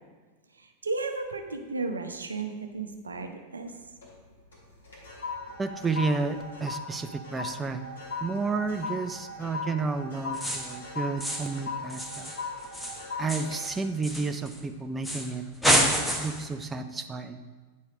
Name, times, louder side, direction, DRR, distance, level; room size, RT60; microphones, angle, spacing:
voice 1, 0.6-3.7, right 3 dB, 75° right, 5 dB, 0.7 m, -34 dB
sound 1, 3.7-4.2 4.5-15.1 15.5-15.8, left 3 dB, 70° left, 2.0 m, -39 dB
voice 2, 5.6-7.9 8.2-12.3 13.2-17.5, right 4 dB, 15° right, 8 dB, 0.4 m, -31 dB
sound 2, 10.3-10.8 11.2-11.6 11.9-14.6 15.0-15.3 15.6-16.5, equal, 5° left, 0.9 m, -28 dB
9.3 x 4.2 x 4.9 m, 1.4 s
figure-of-eight pair, 90°, 0 cm